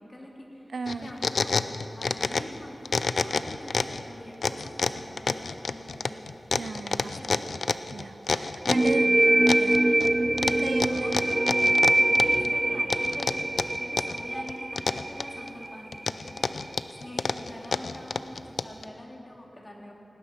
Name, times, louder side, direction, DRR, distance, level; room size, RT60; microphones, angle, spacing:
voice 1, 0.0-6.2 6.8-7.7 8.8-8.9 9.1-9.5 10.9-11.3 11.8-19.9, left 1 dB, 30° left, -1 dB, 2.6 m, -45 dB
voice 2, 0.7-1.1 6.5-7.4 7.9-9.1 9.6-9.8 10.4-11.3 11.6-11.8, right 4 dB, 75° right, 11 dB, 0.5 m, -35 dB
sound 1, 0.9-2.6 2.8-4.0 4.4-9.0 9.5-10.1 10.4-12.5 12.9-14.2 14.5-15.5 15.9-18.8, left 4 dB, 80° left, 0.4 m, -28 dB
sound 2, 8.7-16.1, right 1 dB, 25° right, 0.5 m, -24 dB
18.0 x 10.0 x 5.8 m, 2.9 s
wide cardioid pair, 65°, 0 cm